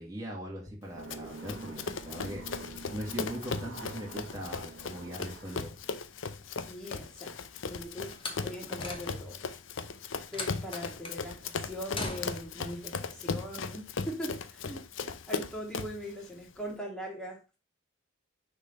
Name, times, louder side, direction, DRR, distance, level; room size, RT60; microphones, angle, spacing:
voice 1, 0.0-2.5 2.9-5.8, equal, 15° right, -3 dB, 2.1 m, -40 dB
sound 1, 0.9-6.0, right 2 dB, 80° right, 1.1 m, -47 dB
Run, 1.1-16.0, left 5 dB, 75° left, 0.6 m, -38 dB
voice 2, 6.7-7.3 7.6-8.2 8.4-9.4 10.3-14.8 15.3-17.4, equal, 5° left, -1 dB, 1.9 m, -40 dB
Slam, 8.1-9.5 10.3-11.2 11.9-12.6, left 3 dB, 25° left, 1.1 m, -39 dB
6.4 x 3.8 x 5.4 m, 0.31 s
head